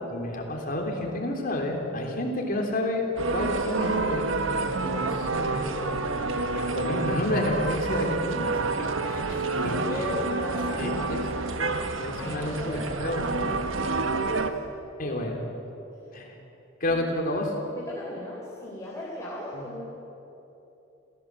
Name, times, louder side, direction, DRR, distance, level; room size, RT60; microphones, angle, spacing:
voice 1, 0.1-6.1 6.5-10.1 10.7-11.4 12.0-13.2 15.0-15.4 16.1-16.3 16.8-17.5 19.5-19.7, left 1 dB, 45° left, 1 dB, 3.4 m, -30 dB
sound 1, 3.2-14.5, right 3 dB, 90° right, 1.3 m, -28 dB
voice 2, 9.7-11.5 12.1-14.7 17.7-19.8, left 1 dB, 15° left, -5 dB, 3.6 m, -38 dB
26.5 x 16.0 x 7.6 m, 3.0 s
head